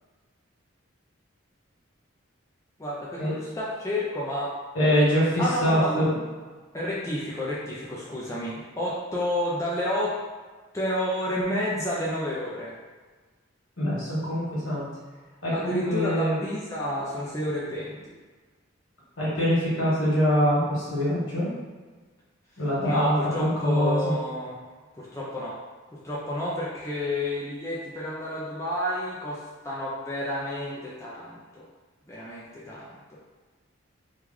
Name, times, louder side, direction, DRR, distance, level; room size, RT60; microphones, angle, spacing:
voice 1, 2.8-4.5 5.4-6.1 6.7-10.2 10.7-12.7 15.5-18.1 22.8-24.6 24.9-25.6 25.9-31.7 32.1-33.2, left 1 dB, 15° left, -7 dB, 0.4 m, -30 dB
voice 2, 4.7-6.2 13.8-14.9 15.4-16.4 19.2-21.5 22.6-24.1, equal, 75° left, -8 dB, 1.5 m, -24 dB
3.0 x 2.3 x 3.6 m, 1.4 s
head